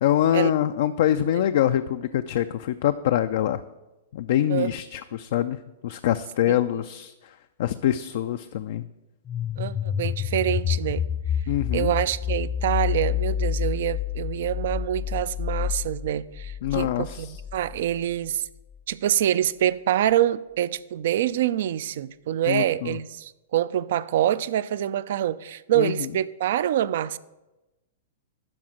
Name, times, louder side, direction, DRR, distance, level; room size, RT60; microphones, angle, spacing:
voice 1, 0.0-3.6 4.1-7.1 7.6-8.8 11.5-11.9 16.6-17.3 22.5-23.0 25.8-26.1, left 11 dB, 60° left, 0.4 m, -24 dB
voice 2, 6.5-6.8 9.6-11.0 11.7-18.5 18.9-27.2, right 11 dB, 60° right, 0.4 m, -26 dB
sound 1, 9.3-18.0, left 9 dB, 30° left, 0.6 m, -28 dB
11.5 x 4.2 x 6.2 m
hypercardioid pair, 110°, 0 cm